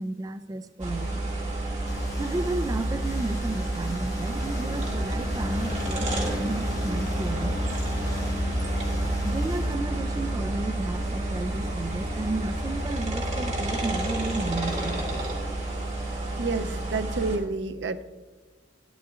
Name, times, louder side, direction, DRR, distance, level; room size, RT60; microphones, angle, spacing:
voice 1, 0.0-1.3 2.2-7.6 9.2-15.4, right 2 dB, 20° right, 0.3 m, -33 dB
sound 1, 0.8-17.4, right 1 dB, 40° right, 2.2 m, -29 dB
sound 2, 1.9-9.7, left 1 dB, 20° left, 0.7 m, -36 dB
voice 2, 16.4-18.0, right 3 dB, 85° right, 0.6 m, -29 dB
13.0 x 9.6 x 2.4 m
head